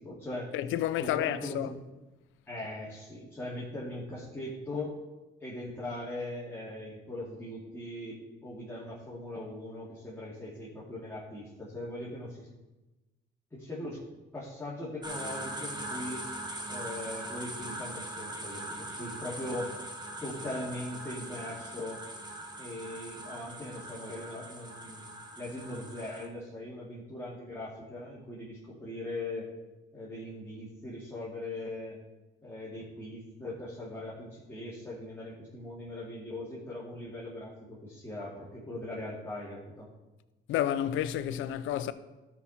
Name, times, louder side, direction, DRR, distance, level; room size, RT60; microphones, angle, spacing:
voice 1, 0.0-0.5 1.0-1.8 2.5-4.9 5.4-12.5 13.5-14.0 14.3-16.3 16.7-19.7 20.2-22.0 22.6-25.0 25.4-29.5 29.9-32.0 32.4-39.9, left 1 dB, 10° left, 2.5 m, -40 dB
voice 2, 0.5-1.7 40.5-41.9, left 11 dB, 90° left, 0.6 m, -30 dB
sound 1, 15.0-26.3, right 1 dB, 20° right, 1.5 m, -41 dB
13.0 x 5.9 x 4.3 m
cardioid pair, 90°, 20 cm